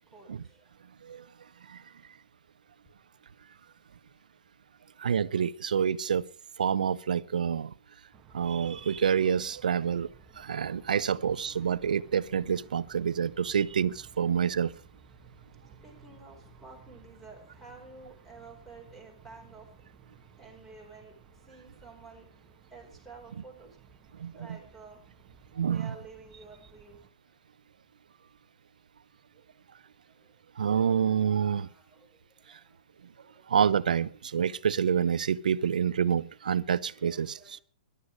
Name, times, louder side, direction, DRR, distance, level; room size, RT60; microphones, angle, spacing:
voice 1, 5.0-6.3 6.6-7.7 8.3-14.7 24.2-24.6 25.6-25.9 30.6-31.7 32.5-32.6 33.5-37.6, right 7 dB, 90° right, 0.8 m, -28 dB
sound 1, 8.1-27.1, right 5 dB, 20° right, 1.4 m, -56 dB
voice 2, 15.8-19.7 20.4-21.1 21.5-22.3 22.7-23.7 24.3-25.0 25.6-27.0 31.5-32.1 33.2-33.4 36.7-37.6, right 3 dB, 5° left, 4.8 m, -50 dB
14.5 x 11.5 x 6.2 m
hypercardioid pair, 155°, 4 cm